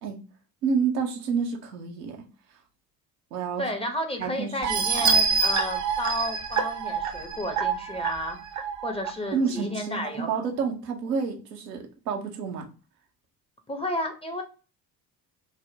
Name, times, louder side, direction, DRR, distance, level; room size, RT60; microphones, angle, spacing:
voice 1, 0.6-2.2 3.3-3.6 4.2-5.0 9.3-12.7, right 5 dB, 80° right, 3 dB, 0.7 m, -29 dB
voice 2, 3.6-10.3 13.7-14.4, left 1 dB, 10° left, 4 dB, 0.6 m, -32 dB
sound 1, 4.6-9.1 9.6-9.7 10.1-10.2, right 5 dB, 35° right, 0.6 m, -26 dB
3.4 x 2.0 x 2.6 m, 0.35 s
figure-of-eight pair, 45°, 48 cm